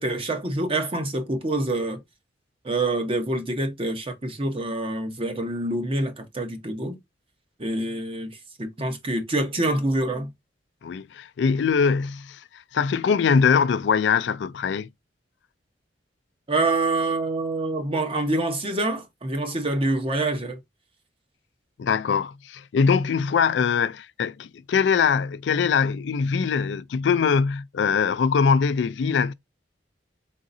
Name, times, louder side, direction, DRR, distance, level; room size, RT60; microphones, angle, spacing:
voice 1, 0.0-2.0 2.6-7.0 7.6-10.3 16.5-20.6, right 2 dB, 30° right, 0.9 m, -26 dB
voice 2, 10.8-12.4 12.7-14.9 21.8-29.3, left 6 dB, 75° left, 0.3 m, -22 dB
4.0 x 3.7 x 2.6 m
head